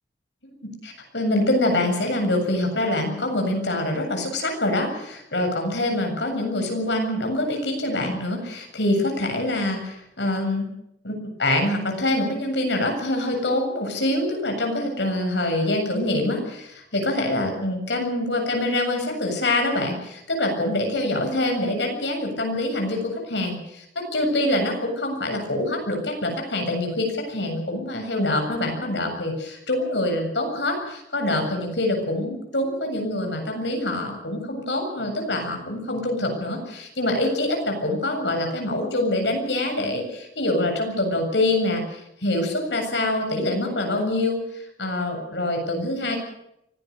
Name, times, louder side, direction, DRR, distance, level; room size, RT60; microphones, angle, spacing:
voice 1, 0.6-10.7 11.0-46.2, left 1 dB, 80° left, 3 dB, 7.6 m, -25 dB
24.5 x 17.5 x 6.9 m, 0.79 s
head